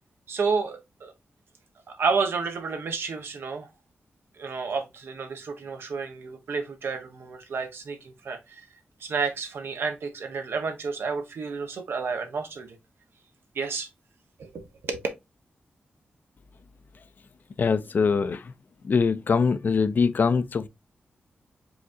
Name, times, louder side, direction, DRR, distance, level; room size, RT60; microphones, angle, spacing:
voice 1, 0.3-1.1 1.9-3.7 4.4-8.7 9.0-12.8 13.5-13.9 14.4-15.0, right 5 dB, 75° right, 0.9 m, -30 dB
voice 2, 17.6-18.5 18.8-20.7, left 5 dB, 50° left, 0.4 m, -23 dB
4.9 x 3.6 x 2.6 m
wide cardioid pair, 125°, 4 cm